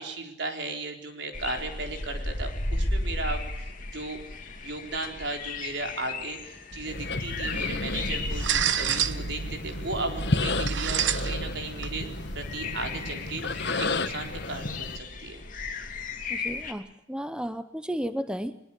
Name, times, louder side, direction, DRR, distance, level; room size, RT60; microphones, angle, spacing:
voice 1, 0.0-4.2 4.6-12.1 12.3-15.4, right 2 dB, 70° right, 4 dB, 4.1 m, -36 dB
sound 1, 1.3-16.7, left 2 dB, 45° left, 2.7 m, -35 dB
sound 2, 6.7-14.0, right 7 dB, 90° right, 1.1 m, -32 dB
sound 3, 6.9-15.0, left 3 dB, 65° left, 1.5 m, -33 dB
voice 2, 16.3-18.6, equal, 5° right, 11 dB, 0.8 m, -33 dB
22.0 x 21.5 x 8.4 m, 0.79 s
head